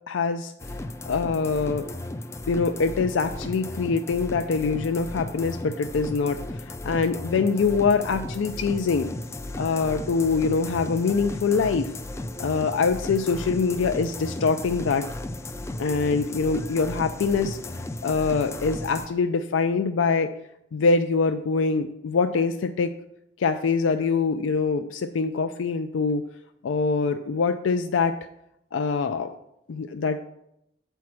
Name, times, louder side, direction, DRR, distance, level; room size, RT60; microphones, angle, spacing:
voice 1, 0.1-0.5 1.1-1.9 2.5-9.1 9.6-11.9 12.4-15.1 15.8-17.6 18.0-20.3 20.7-22.9 23.4-26.2 26.6-28.1 28.7-29.3 29.7-30.2, left 4 dB, 85° left, 7 dB, 0.4 m, -24 dB
sound 1, 0.6-19.1, left 1 dB, 15° left, 0.3 m, -35 dB
8.4 x 4.5 x 6.0 m, 0.80 s
head